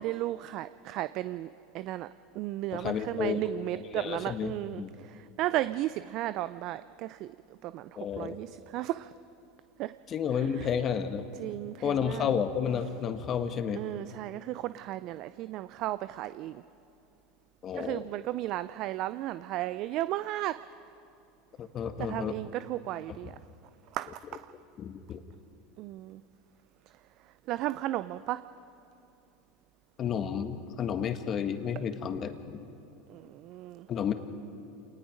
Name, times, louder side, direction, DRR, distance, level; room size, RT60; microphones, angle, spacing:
voice 1, 0.0-1.5 1.7-2.1 2.4-4.8 5.1-7.3 7.6-9.1 9.8-9.9 10.4-10.7 11.4-12.3 13.8-16.6 17.7-20.6 22.1-23.3 23.9-24.5 25.8-26.2 27.5-28.4 33.1-33.9, right 15 dB, 55° right, 14 dB, 0.4 m, -34 dB
voice 2, 2.7-3.5 3.8-4.9 8.0-8.4 10.1-11.2 11.8-13.8 17.6-18.0 21.6-22.4 24.8-25.2 30.0-32.6 33.9-34.1, left 7 dB, 40° left, 8 dB, 1.6 m, -31 dB
28.5 x 19.5 x 5.2 m, 2.6 s
hypercardioid pair, 90°, 0 cm